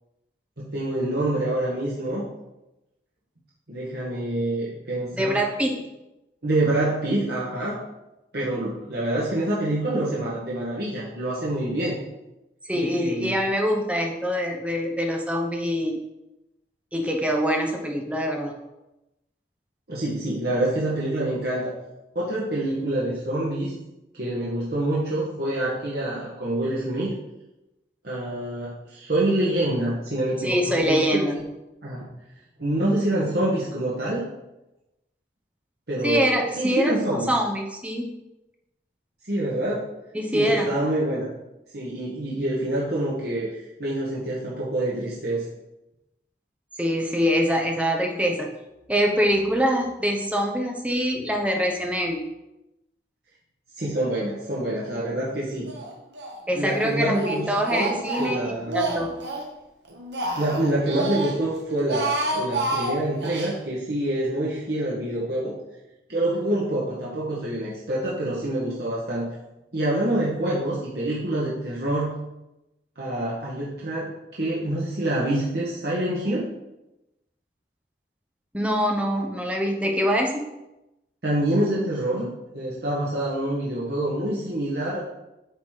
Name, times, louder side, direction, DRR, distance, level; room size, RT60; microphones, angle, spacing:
voice 1, 0.6-2.2 3.7-5.3 6.4-7.8 8.3-12.0 12.7-13.4 19.9-21.7 22.1-23.7 24.1-27.1 28.0-31.4 31.8-32.0 32.6-34.2 35.9-37.3 39.3-39.8 40.3-41.3 41.7-43.5 43.8-45.4 53.8-55.7 56.5-58.8 60.4-65.5 66.1-69.3 69.7-72.1 73.0-76.5 81.2-85.0, right 1 dB, 65° right, -7 dB, 1.5 m, -26 dB
voice 2, 5.1-5.8 12.6-16.0 16.9-18.5 30.4-31.4 36.0-38.1 40.1-40.7 46.8-48.5 48.9-52.3 56.5-59.1 78.5-80.5, equal, 5° right, 1 dB, 0.9 m, -24 dB
Speech, 55.7-56.4 56.7-59.5 59.9-61.4 61.7-63.5, right 2 dB, 85° right, 1.1 m, -30 dB
8.3 x 4.1 x 4.9 m, 0.95 s
head